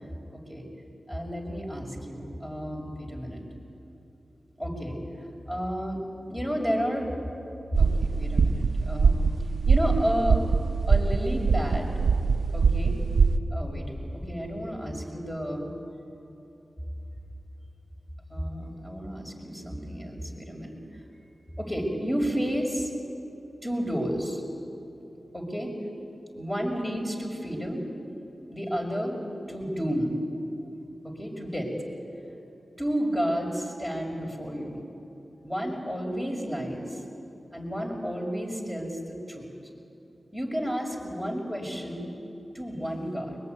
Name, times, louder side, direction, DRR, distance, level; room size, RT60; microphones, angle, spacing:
voice 1, 0.3-0.6 1.1-3.4 4.6-5.0 5.5-6.0 6.3-7.1 7.7-9.2 9.7-10.4 10.9-11.9 12.5-13.0 13.5-15.7 18.3-20.7 21.6-22.9 23.6-24.4 25.3-25.7 26.4-27.8 28.5-29.2 29.5-30.1 31.0-31.7 32.8-34.8 35.4-37.0 37.5-39.5 40.3-42.1 42.5-43.4, equal, 15° left, 1 dB, 6.1 m, -31 dB
sound 1, 7.7-13.4, right 4 dB, 85° right, 0.8 m, -23 dB
22.5 x 22.0 x 9.6 m, 2.9 s
cardioid pair, 50°, 0 cm